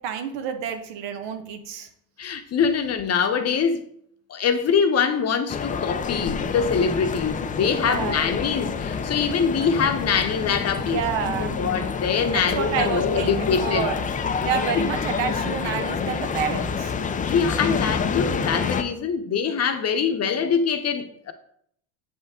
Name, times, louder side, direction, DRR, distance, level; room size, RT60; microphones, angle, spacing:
voice 1, 0.0-1.9 7.8-8.2 10.8-11.6 12.3-14.0 14.4-16.9, right 7 dB, 75° right, 1.3 m, -29 dB
voice 2, 2.2-3.8 4.3-13.9 14.7-14.9 17.3-21.3, left 6 dB, 35° left, 0.8 m, -24 dB
sound 1, 5.5-18.8, left 6 dB, 20° left, 0.4 m, -28 dB
7.4 x 5.5 x 3.6 m
supercardioid pair, 105°, 43 cm